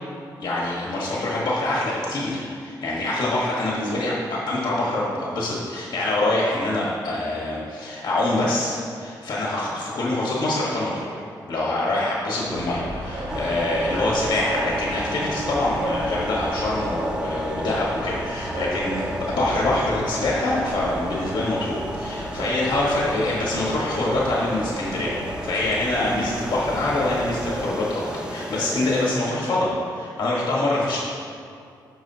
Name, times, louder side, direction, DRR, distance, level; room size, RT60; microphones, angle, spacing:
voice 1, 0.4-25.1 25.4-31.0, left 2 dB, 65° left, -5 dB, 1.3 m, -25 dB
sound 1, 12.5-27.6, right 1 dB, 85° right, 1.9 m, -34 dB
sound 2, 13.3-29.1, equal, 10° right, 0.5 m, -33 dB
9.4 x 6.1 x 2.8 m, 2.3 s
cardioid pair, 75°, 8 cm